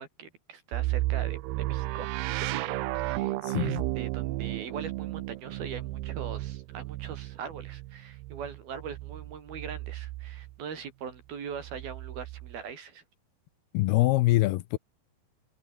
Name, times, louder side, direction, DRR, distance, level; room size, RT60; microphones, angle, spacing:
voice 1, 0.0-13.0, right 7 dB, 65° right, 5.5 m, -41 dB
sound 1, 0.7-10.5 11.6-12.6, right 17 dB, 80° right, 2.9 m, -33 dB
voice 2, 3.4-3.9 13.7-14.8, left 18 dB, 80° left, 2.7 m, -24 dB
omnidirectional pair, 4.7 m